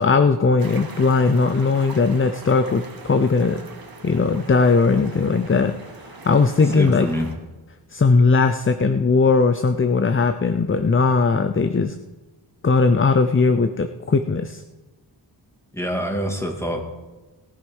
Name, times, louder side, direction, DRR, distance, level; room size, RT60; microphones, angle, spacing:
voice 1, 0.0-3.6 4.0-5.7 6.2-7.1 7.9-11.9 12.6-14.6, left 4 dB, 30° left, 9 dB, 0.6 m, -18 dB
sound 1, 0.6-7.4, right 3 dB, 50° right, 1.8 m, -41 dB
voice 2, 6.6-7.3 15.7-16.8, equal, 5° left, 2 dB, 2.4 m, -26 dB
18.5 x 9.3 x 5.5 m, 1.2 s
wide cardioid pair, 80°, 44 cm